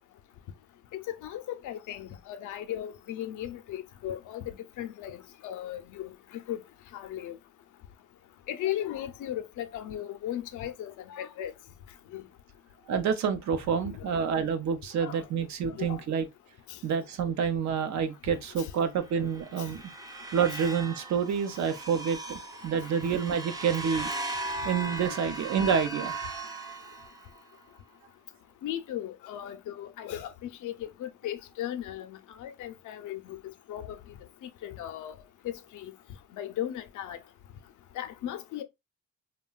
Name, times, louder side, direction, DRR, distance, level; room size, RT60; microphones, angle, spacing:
voice 1, 1.1-6.1 6.5-6.6 6.9-7.3 8.5-11.5 12.1-12.2 13.8-14.2 15.0-15.2 15.8-16.0 18.6-18.7 20.5-20.6 25.0-25.1 28.6-33.4 33.7-34.0 34.4-35.2 35.4-35.9 36.3-37.2 38.0-38.6, left 11 dB, 80° left, 0.5 m, -37 dB
voice 2, 12.9-16.3 16.8-19.8 20.3-24.1 24.6-26.1, right 7 dB, 65° right, 0.6 m, -28 dB
sound 1, 19.1-27.4, right 2 dB, 15° right, 0.5 m, -38 dB
3.0 x 2.2 x 2.2 m
cardioid pair, 90°, 30 cm